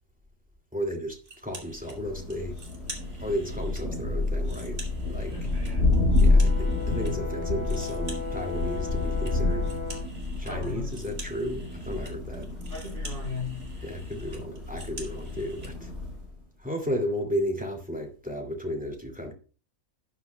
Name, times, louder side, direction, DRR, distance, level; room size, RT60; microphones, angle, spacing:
voice 1, 0.7-2.6 3.2-4.8 5.1-5.3 6.2-9.8 10.4-12.5 13.8-15.9 16.6-19.3, equal, 5° right, 2.2 m, -33 dB
old telephone dialing disc, 1.2-2.0 2.3-3.8 4.2-7.1 7.4-15.7, right 2 dB, 55° right, 2.8 m, -47 dB
Thunder, 1.8-16.3, left 2 dB, 55° left, 4.5 m, -28 dB
voice 2, 5.3-5.9 10.4-10.9 12.7-13.7, left 3 dB, 40° right, 3.6 m, -37 dB
Brass instrument, 5.9-10.1, left 5 dB, 85° left, 3.0 m, -37 dB
12.0 x 9.7 x 2.3 m
omnidirectional pair, 1.4 m